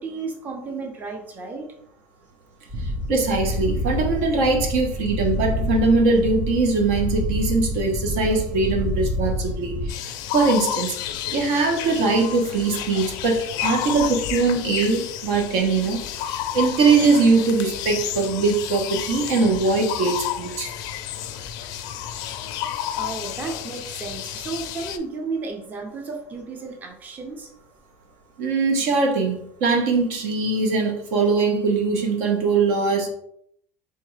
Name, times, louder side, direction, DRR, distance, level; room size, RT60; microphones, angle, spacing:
voice 1, 0.0-1.7 22.0-22.2 22.7-27.5, right 4 dB, 20° right, 3 dB, 0.6 m, -33 dB
sound 1, 2.7-9.9, left 1 dB, 35° right, 1.2 m, -27 dB
voice 2, 3.1-11.0 11.3-16.0 16.3-20.7 28.4-33.1, right 3 dB, 75° right, 2 dB, 1.1 m, -21 dB
sound 2, 9.9-25.0, left 11 dB, 55° left, 0.4 m, -31 dB
3.6 x 3.4 x 3.2 m, 0.69 s
supercardioid pair, 135°, 8 cm